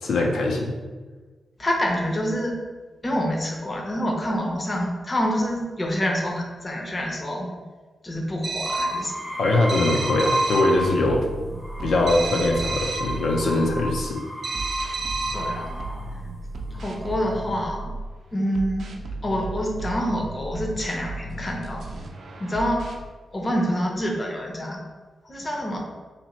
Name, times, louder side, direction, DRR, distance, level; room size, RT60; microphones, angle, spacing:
voice 1, 0.0-0.8 9.4-11.3 11.8-14.2, left 2 dB, 75° left, 0 dB, 0.5 m, -22 dB
voice 2, 1.6-2.6 3.0-7.5 8.0-9.1 15.3-15.8 16.7-17.9 18.3-18.9 19.2-21.9 22.4-22.8 23.3-24.8 25.2-25.8, equal, 25° left, 0 dB, 0.6 m, -27 dB
sound 1, 8.4-9.1 9.7-10.8 12.1-13.2 14.4-15.6, right 4 dB, 45° right, 0.7 m, -31 dB
sound 2, 8.7-11.2 11.5-16.1 16.9-17.4, equal, 10° right, 0.7 m, -31 dB
sound 3, 10.7-14.1 14.5-18.1 18.5-23.0, right 2 dB, 75° right, 0.5 m, -35 dB
3.0 x 2.9 x 4.2 m, 1.4 s
wide cardioid pair, 135°, 0 cm